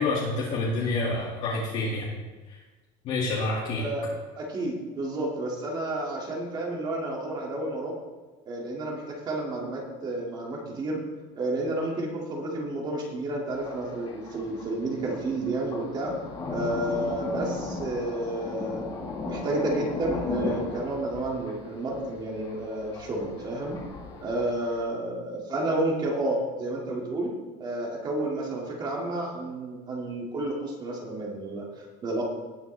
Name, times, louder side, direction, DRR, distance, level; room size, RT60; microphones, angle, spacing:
voice 1, 0.0-2.1 2.5-2.6 3.0-3.8, left 2 dB, 45° left, -5 dB, 2.2 m, -28 dB
voice 2, 4.4-8.0 8.5-11.0 11.4-16.1 16.5-18.8 19.2-23.8 24.2-27.3 27.6-32.2, right 1 dB, 25° right, -1 dB, 2.3 m, -31 dB
Thunder, 13.5-24.8, left 3 dB, 30° left, 1.7 m, -37 dB
18.5 x 8.0 x 3.4 m, 1.3 s
cardioid pair, 175°, 16 cm